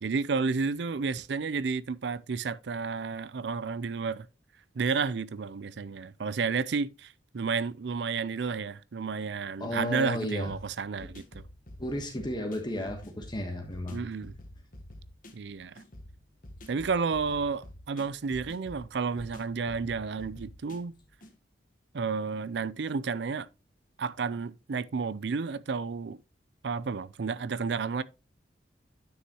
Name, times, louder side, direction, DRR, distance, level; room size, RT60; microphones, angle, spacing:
voice 1, 0.0-4.3 4.7-11.4 12.8-12.9 13.9-14.3 15.3-15.8 16.7-20.9 21.9-23.5 24.0-26.2 26.6-28.0, right 5 dB, 70° right, 0.5 m, -31 dB
voice 2, 9.6-10.5 11.8-14.0, left 1 dB, 25° left, 1.3 m, -33 dB
sound 1, 10.5-21.3, left 1 dB, 45° left, 1.4 m, -49 dB
9.6 x 6.4 x 3.0 m
head